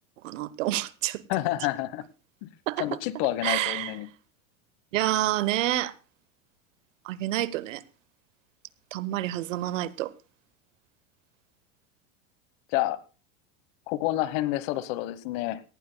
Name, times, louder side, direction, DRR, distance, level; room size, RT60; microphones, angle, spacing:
voice 1, 0.2-1.2 2.7-2.9 3.4-4.0 4.9-5.9 7.0-7.8 8.9-10.1, right 15 dB, 90° right, 1.1 m, -28 dB
voice 2, 1.3-2.0 2.4-2.5 2.8-4.1 12.7-13.0 13.9-15.6, left 15 dB, 55° left, 1.3 m, -28 dB
18.0 x 17.0 x 2.3 m
supercardioid pair, 150°, 37 cm